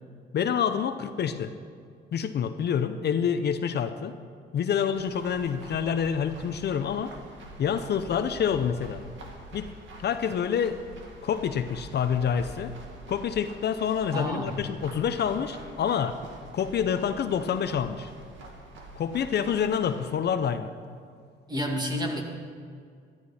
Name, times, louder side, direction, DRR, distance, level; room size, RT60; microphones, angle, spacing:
voice 1, 0.3-1.5 2.1-4.1 4.5-7.1 7.6-9.0 9.5-9.7 10.0-10.8 11.2-12.7 13.1-16.2 16.5-18.1 19.0-20.7, left 7 dB, 55° left, 9 dB, 0.7 m, -27 dB
sound 1, 4.9-20.1, right 1 dB, 75° right, 2.1 m, -46 dB
voice 2, 14.1-14.5 21.5-22.2, equal, 20° right, 1 dB, 2.2 m, -29 dB
13.5 x 12.5 x 4.3 m, 2.2 s
cardioid pair, 90°, 20 cm